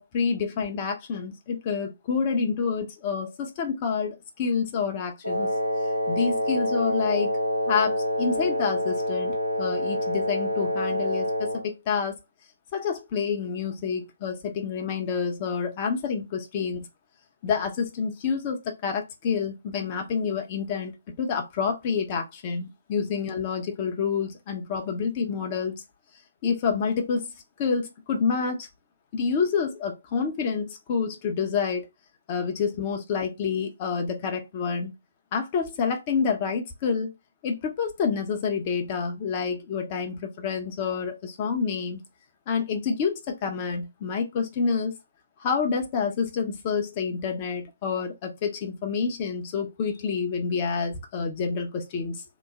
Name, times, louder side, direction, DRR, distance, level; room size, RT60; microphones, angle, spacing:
voice 1, 0.0-5.5 6.1-7.4 7.7-12.2 12.7-16.9 17.4-25.8 26.4-27.3 27.6-28.7 29.1-31.9 32.3-34.9 35.3-37.1 37.4-42.0 42.5-44.9 45.4-52.2, left 6 dB, 30° left, 0.5 m, -28 dB
Wind instrument woodwind instrument, 5.2-11.7, left 1 dB, 80° right, 0.7 m, -27 dB
2.9 x 2.0 x 3.6 m
figure-of-eight pair, 140°, 0 cm